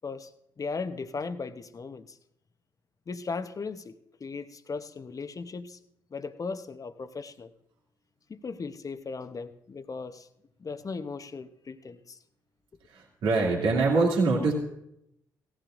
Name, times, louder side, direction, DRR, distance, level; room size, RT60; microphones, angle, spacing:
voice 1, 0.6-2.2 3.1-5.8 6.1-7.5 8.3-10.3 10.6-12.2, left 4 dB, 35° left, 0.9 m, -37 dB
voice 2, 12.9-14.5, right 3 dB, 70° right, 2.5 m, -24 dB
17.0 x 14.0 x 2.6 m
hypercardioid pair, 45°, 10 cm